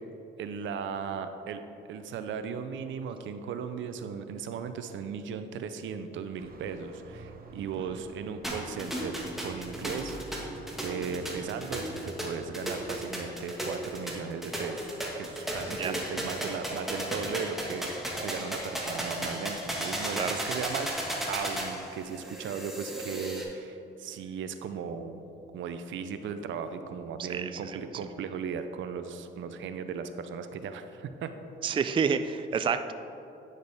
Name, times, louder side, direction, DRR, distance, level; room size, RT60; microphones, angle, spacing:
voice 1, 0.4-1.6 1.9-10.2 10.8-17.9 18.2-25.2 25.5-31.3, right 6 dB, 75° right, 9 dB, 0.6 m, -37 dB
sound 1, 6.4-12.6, right 3 dB, 50° right, 0.9 m, -47 dB
sound 2, 8.4-23.4, right 1 dB, ahead, 1.6 m, -35 dB
voice 2, 27.2-27.8 31.6-32.9, right 6 dB, 25° right, 10 dB, 0.3 m, -29 dB
9.7 x 6.5 x 3.5 m, 2.8 s
cardioid pair, 90°, 20 cm